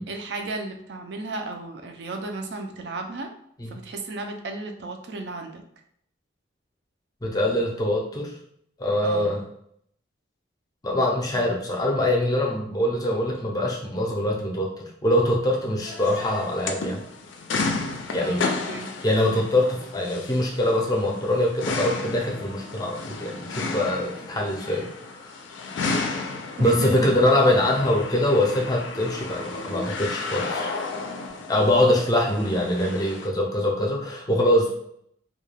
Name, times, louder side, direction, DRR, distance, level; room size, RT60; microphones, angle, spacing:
voice 1, 0.1-3.3 3.7-5.6 9.0-9.3 18.2-19.0 19.3-19.5 26.6-27.4, right 2 dB, 60° right, 4 dB, 0.4 m, -34 dB
voice 2, 7.2-8.3 8.8-9.4 10.8-14.7 15.0-17.0 18.1-18.5 19.0-25.2 26.6-30.7 31.5-34.8, left 1 dB, 20° left, -1 dB, 0.5 m, -23 dB
sound 1, 15.8-33.3, left 3 dB, 75° left, 0.4 m, -33 dB
2.3 x 2.2 x 3.2 m, 0.68 s
head